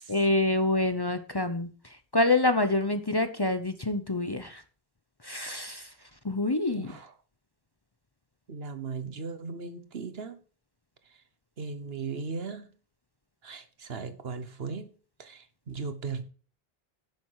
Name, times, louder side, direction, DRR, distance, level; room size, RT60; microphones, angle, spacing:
voice 1, 0.1-1.7 2.1-4.6 5.2-5.9 6.2-6.9, left 2 dB, 25° left, 0.8 m, -26 dB
voice 2, 6.7-7.1 8.5-10.4 11.1-11.2 11.6-12.7 13.4-14.9 15.2-16.2, right 4 dB, 70° right, 1.4 m, -37 dB
11.0 x 7.2 x 4.8 m
omnidirectional pair, 1.0 m